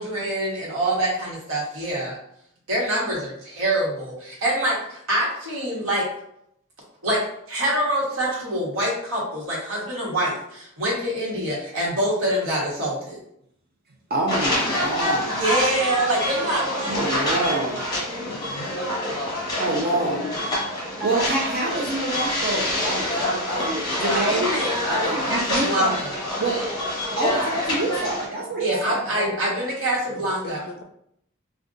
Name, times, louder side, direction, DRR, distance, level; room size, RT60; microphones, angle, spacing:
voice 1, 0.0-2.2 2.7-6.0 7.0-7.2 7.5-13.2 15.4-17.1 24.1-26.2 28.6-30.6, right 1 dB, 70° right, -4 dB, 1.2 m, -25 dB
voice 2, 14.1-15.4 16.8-17.8 19.6-20.2 20.6-24.4 24.9-26.0 26.4-26.6 27.2-29.0, right 2 dB, 45° right, -2 dB, 0.5 m, -26 dB
sound 1, 14.3-28.3, left 1 dB, 20° left, 0.9 m, -27 dB
voice 3, 18.2-18.7 19.3-19.4 19.9-20.4 29.1-29.4 30.1-30.8, left 3 dB, 65° left, 4 dB, 0.4 m, -35 dB
2.5 x 2.2 x 3.7 m, 0.73 s
head